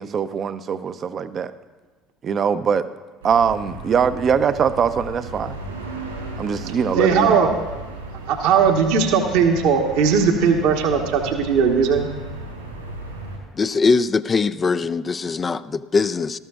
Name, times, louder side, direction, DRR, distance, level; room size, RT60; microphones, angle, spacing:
voice 1, 0.0-1.5 2.2-2.9 3.2-5.6 6.4-7.5, right 7 dB, 40° right, 13 dB, 0.6 m, -22 dB
sound 1, 3.2-13.4, right 2 dB, 80° right, 3.3 m, -35 dB
voice 2, 7.0-7.5 8.3-12.1, right 6 dB, 60° right, 3 dB, 1.1 m, -18 dB
voice 3, 13.6-16.4, left 4 dB, 30° left, 12 dB, 0.4 m, -21 dB
19.0 x 13.0 x 2.4 m, 1.3 s
figure-of-eight pair, 60°, 0 cm